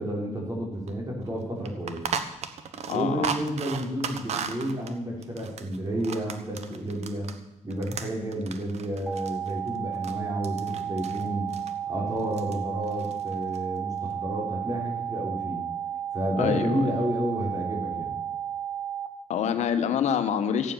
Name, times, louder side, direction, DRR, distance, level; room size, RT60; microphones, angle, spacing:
voice 1, 0.0-2.0 2.9-7.3 7.6-11.5 11.9-15.6 16.1-18.2, equal, 30° right, -1 dB, 4.8 m, -31 dB
sound 1, 0.9-1.0 1.2-1.3 1.7-7.4 7.7-10.2 10.4-11.2 11.5-11.7 12.2-12.6 12.8-13.6, right 6 dB, 70° right, 1.2 m, -36 dB
voice 2, 2.9-3.3 16.4-16.9 19.3-20.7, left 8 dB, 85° left, 8 dB, 1.3 m, -26 dB
sound 2, 9.1-19.1, right 10 dB, 10° right, 1.8 m, -33 dB
14.5 x 9.2 x 7.0 m, 0.96 s
cardioid pair, 95°, 12 cm